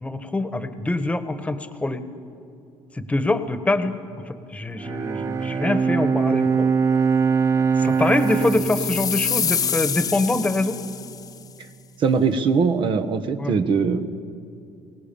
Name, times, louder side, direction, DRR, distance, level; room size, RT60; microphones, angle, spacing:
voice 1, 0.0-2.0 2.9-3.9 4.3-6.7 7.8-10.8 13.4-13.6, left 2 dB, 15° left, 10 dB, 1.4 m, -24 dB
Bowed string instrument, 4.8-10.3, right 5 dB, 30° right, 0.5 m, -23 dB
sound 1, 8.1-11.3, left 7 dB, 40° left, 0.8 m, -27 dB
voice 2, 12.0-14.2, right 5 dB, 55° right, 9 dB, 1.3 m, -21 dB
23.0 x 18.0 x 7.1 m, 2.6 s
cardioid pair, 100°, 10 cm